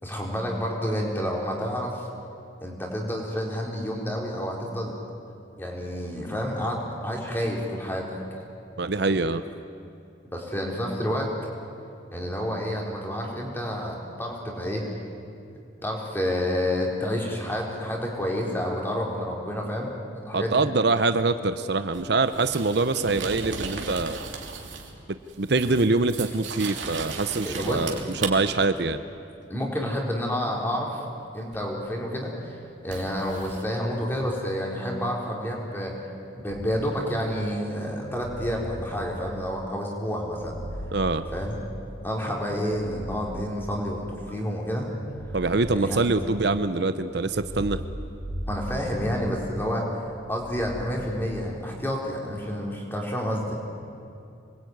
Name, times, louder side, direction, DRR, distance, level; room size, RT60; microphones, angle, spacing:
voice 1, 0.0-2.1 2.6-5.0 5.6-8.2 10.3-11.3 12.1-14.8 15.8-19.9 20.2-20.7 27.4-27.8 29.5-31.0 31.3-35.9 36.3-40.5 41.3-41.6 42.0-44.9 45.8-46.0 48.5-49.9 50.3-53.6, equal, 10° left, -1 dB, 4.0 m, -29 dB
voice 2, 8.8-9.4 20.3-24.2 25.4-29.0 40.9-41.2 45.3-47.8, right 3 dB, 55° right, 11 dB, 0.7 m, -24 dB
sound 1, 21.9-25.0 25.3-28.3 31.5-31.6 32.9-33.6, right 5 dB, 70° right, 3.1 m, -36 dB
sound 2, 36.5-37.2 38.0-39.6 40.2-42.0 42.5-44.1 44.9-46.6 47.1-49.7 50.3-50.9, equal, 45° left, 5.5 m, -38 dB
26.5 x 21.0 x 9.4 m, 2.6 s
head